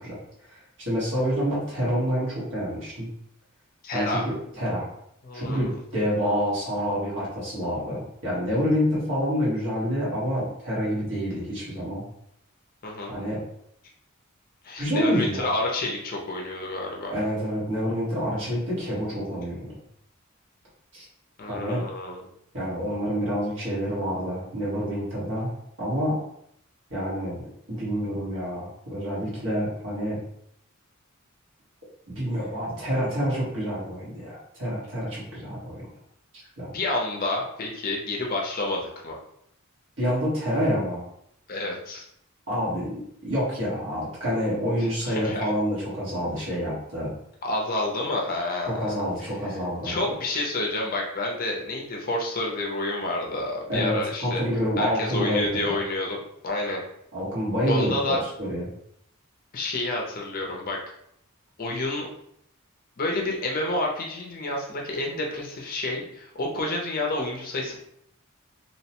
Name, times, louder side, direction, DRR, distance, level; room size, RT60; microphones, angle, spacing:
voice 1, 0.0-3.1 3.9-4.8 5.3-12.0 13.1-13.4 14.8-15.5 17.1-19.8 20.9-21.0 21.5-21.8 22.5-26.2 26.9-27.4 27.7-30.2 32.1-35.9 36.6-36.7 40.0-41.1 42.5-42.9 43.2-47.1 48.7-50.0 53.7-55.8 57.1-58.7, equal, 65° right, -7 dB, 1.3 m, -27 dB
voice 2, 3.8-4.3 5.2-5.7 12.8-13.1 14.6-17.1 21.4-22.2 36.7-39.2 41.5-42.0 45.0-45.5 47.4-49.3 49.8-54.4 54.8-56.8 57.7-58.2 59.5-60.8 61.6-62.1 63.0-67.8, left 2 dB, 45° left, -1 dB, 0.5 m, -29 dB
2.8 x 2.1 x 2.8 m, 0.72 s
head